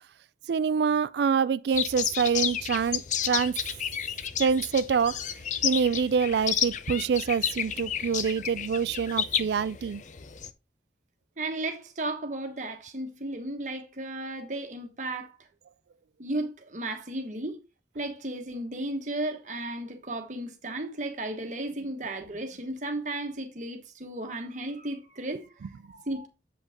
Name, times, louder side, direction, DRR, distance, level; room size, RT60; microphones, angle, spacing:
voice 1, 0.5-3.5 4.4-5.2 5.6-10.0, right 6 dB, 65° right, 0.3 m, -26 dB
sound 1, 1.7-10.5, left 9 dB, 40° left, 0.5 m, -31 dB
voice 2, 11.4-15.3 16.2-17.6 17.9-26.3, right 2 dB, 40° right, 1.3 m, -34 dB
7.7 x 5.1 x 3.6 m
head